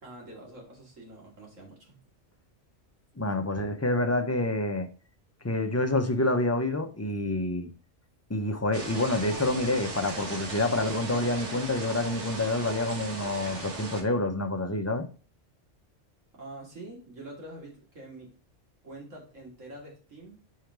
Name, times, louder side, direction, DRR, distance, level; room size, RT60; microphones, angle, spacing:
voice 1, 0.0-2.0 16.3-18.3 18.8-20.4, right 1 dB, 85° right, 2.9 m, -45 dB
voice 2, 3.2-4.9 5.4-7.7 8.3-15.1, left 2 dB, 20° left, 0.5 m, -27 dB
sound 1, 8.7-14.0, right 2 dB, 65° right, 1.6 m, -37 dB
5.2 x 4.6 x 4.6 m
omnidirectional pair, 1.3 m